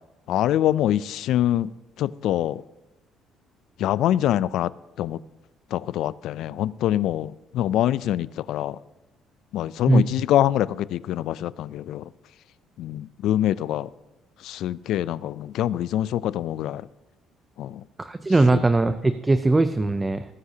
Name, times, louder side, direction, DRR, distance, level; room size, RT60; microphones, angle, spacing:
voice 1, 0.3-1.7 2.0-2.6 3.8-4.7 5.0-5.2 5.7-8.8 9.5-12.1 12.8-13.9 14.4-16.9 17.6-17.8 18.5-18.6, left 12 dB, 75° left, 20 dB, 0.3 m, -24 dB
voice 2, 18.0-20.3, right 2 dB, 15° right, 10 dB, 0.5 m, -20 dB
20.0 x 9.7 x 2.8 m, 0.99 s
cardioid pair, 115°, 0 cm